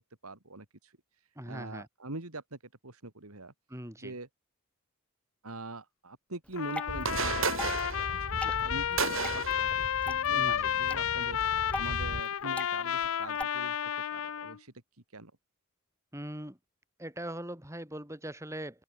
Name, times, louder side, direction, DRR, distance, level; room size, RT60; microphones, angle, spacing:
voice 1, 0.2-0.9 1.5-3.5 4.0-4.3 5.4-7.9 8.2-11.4 11.8-13.8 14.1-14.7 15.1-15.3, right 2 dB, 80° right, 3.2 m, -43 dB
voice 2, 1.4-1.9 3.7-4.2 10.3-10.7 16.1-16.6 17.0-18.8, right 1 dB, 15° right, 6.9 m, -41 dB
Water / Drip, 6.4-13.4, left 1 dB, 5° left, 7.8 m, -44 dB
Trumpet, 6.5-14.6, left 9 dB, 65° left, 0.4 m, -31 dB
sound 1, 6.9-12.2, right 4 dB, 60° right, 3.9 m, -35 dB
open air
head